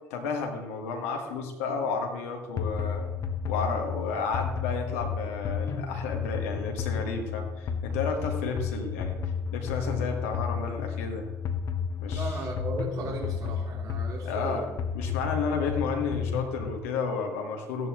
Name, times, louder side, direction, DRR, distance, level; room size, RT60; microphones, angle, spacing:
voice 1, 0.1-3.1 3.5-9.2 9.5-11.3 12.0-12.4 14.2-14.7 14.9-17.9, left 5 dB, 75° left, 2 dB, 1.7 m, -32 dB
sound 1, 2.6-16.8, left 6 dB, 55° left, 1.3 m, -32 dB
voice 2, 12.1-14.8, right 3 dB, 60° right, -1 dB, 2.9 m, -36 dB
15.0 x 11.0 x 3.1 m, 1.1 s
figure-of-eight pair, 50°, 7 cm